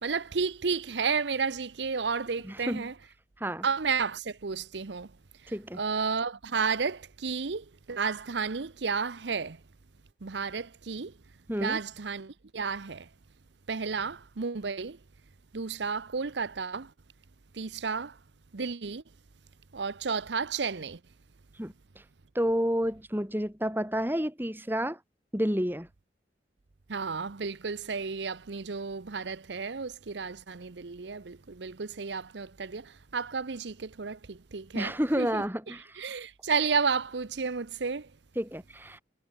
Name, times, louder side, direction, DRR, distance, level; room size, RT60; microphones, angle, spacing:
voice 1, 0.0-2.9 3.6-5.1 5.8-9.6 10.2-11.1 11.6-13.1 13.7-15.0 15.5-16.9 17.5-18.1 18.5-19.0 19.7-21.0 26.9-35.4 36.0-38.1, right 5 dB, 80° right, 0.8 m, -32 dB
voice 2, 2.4-2.9 3.4-3.7 5.5-5.8 11.5-11.8 21.6-21.7 22.3-25.0 25.3-25.9 34.7-36.2 38.4-39.0, equal, 10° right, 4.2 m, -30 dB
head